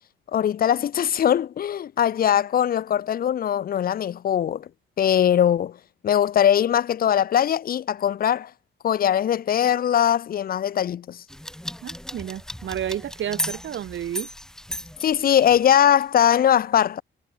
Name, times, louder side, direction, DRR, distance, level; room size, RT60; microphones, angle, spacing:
voice 1, 0.3-4.7 5.0-5.7 6.0-8.5 8.8-11.2 15.0-17.0, left 10 dB, 50° left, 0.6 m, -21 dB
sound 1, 11.3-15.8, equal, 5° left, 2.6 m, -35 dB
voice 2, 11.8-14.3, right 10 dB, 70° right, 5.4 m, -31 dB
wide cardioid pair, 170°, 20 cm